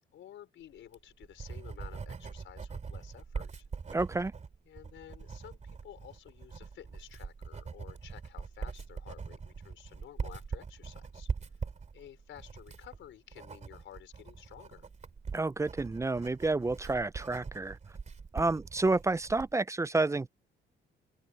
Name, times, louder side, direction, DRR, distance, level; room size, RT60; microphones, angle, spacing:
voice 1, 0.1-3.7 4.7-11.3 11.9-14.9, left 11 dB, 75° left, 5.2 m, -52 dB
Writing, 0.8-19.5, right 5 dB, 35° right, 2.8 m, -42 dB
voice 2, 3.9-4.3 15.3-17.8 18.3-20.3, right 3 dB, 15° right, 0.4 m, -29 dB
cardioid pair, 90°, 20 cm